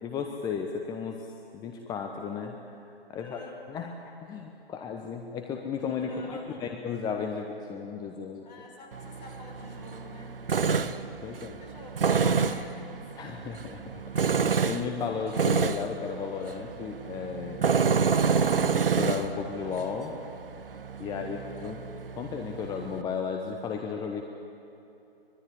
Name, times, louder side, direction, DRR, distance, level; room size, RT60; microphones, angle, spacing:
voice 1, 0.0-1.3 1.5-2.6 3.1-3.4 3.7-3.9 4.2-8.4 10.6-10.9 11.2-11.6 13.2-14.0 14.3-17.8 18.6-20.1 21.0-21.8 22.2-24.2, left 6 dB, 15° left, 4 dB, 1.1 m, -34 dB
voice 2, 3.1-3.6 5.8-6.7 8.4-10.4 11.6-13.1 18.4-18.7 21.0-21.4, left 3 dB, 45° left, 2 dB, 6.1 m, -47 dB
Tools, 8.9-23.0, right 5 dB, 65° right, 1.1 m, -29 dB
24.5 x 21.0 x 10.0 m, 2.8 s
figure-of-eight pair, 125°, 30 cm